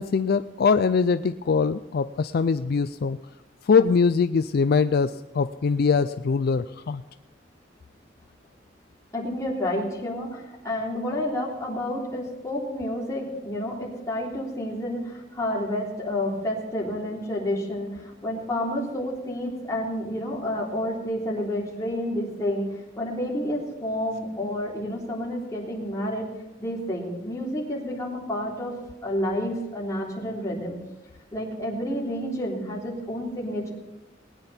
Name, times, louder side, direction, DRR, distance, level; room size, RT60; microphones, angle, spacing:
voice 1, 0.0-3.2 3.7-7.0, left 5 dB, 60° left, 11 dB, 0.4 m, -22 dB
voice 2, 9.1-22.7 23.0-26.3 26.6-28.7 29.0-30.8 31.3-33.7, left 1 dB, 20° left, -4 dB, 3.4 m, -30 dB
20.0 x 9.9 x 4.3 m, 1.0 s
head